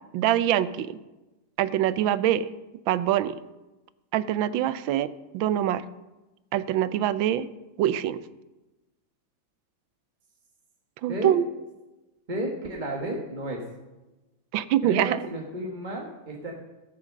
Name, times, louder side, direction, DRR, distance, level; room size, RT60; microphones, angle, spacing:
voice 1, 0.1-1.0 1.6-2.5 2.9-3.4 4.1-5.8 6.5-7.5 7.8-8.2 11.0-11.4 14.5-15.2, right 11 dB, 85° right, 16 dB, 1.4 m, -24 dB
voice 2, 12.3-13.6 14.8-16.5, right 1 dB, 25° right, -1 dB, 1.3 m, -32 dB
14.0 x 7.2 x 6.4 m, 1.1 s
omnidirectional pair, 2.1 m